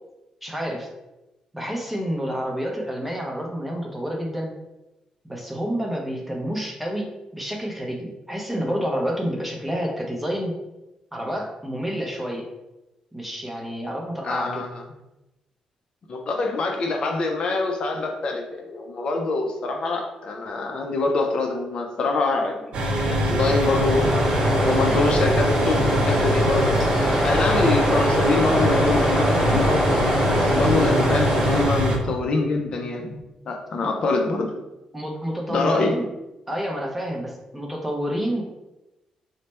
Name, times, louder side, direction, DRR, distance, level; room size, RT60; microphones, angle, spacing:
voice 1, 0.4-0.9 1.5-4.5 5.2-10.6 11.1-12.5 13.1-14.6 34.9-36.1 36.5-38.4, equal, 5° right, -1 dB, 0.6 m, -29 dB
voice 2, 14.2-14.8 16.1-22.7 23.1-24.2 24.5-26.9 27.2-29.8 30.3-33.2 33.5-34.5 35.5-36.0, left 3 dB, 50° left, 2 dB, 0.4 m, -25 dB
sound 1, 22.7-32.0, right 1 dB, 60° right, 0.6 m, -23 dB
sound 2, 23.0-31.6, equal, 20° left, 0.9 m, -24 dB
3.1 x 2.1 x 4.2 m, 0.97 s
cardioid pair, 140°, 2 cm